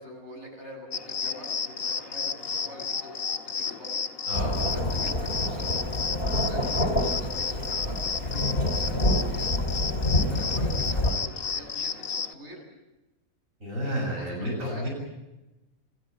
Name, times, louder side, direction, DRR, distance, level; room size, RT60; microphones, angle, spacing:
voice 1, 0.0-4.0 4.7-5.7 6.2-9.9 10.2-12.6 14.2-14.9, equal, 50° right, 1 dB, 8.0 m, -45 dB
sound 1, 0.9-12.3, left 6 dB, 65° left, 1.8 m, -32 dB
Thunderstorm / Rain, 4.3-11.1, left 1 dB, 35° left, 2.9 m, -27 dB
voice 2, 13.6-14.9, equal, 65° right, -1 dB, 7.5 m, -31 dB
27.5 x 15.0 x 9.0 m, 1.0 s
omnidirectional pair, 1.5 m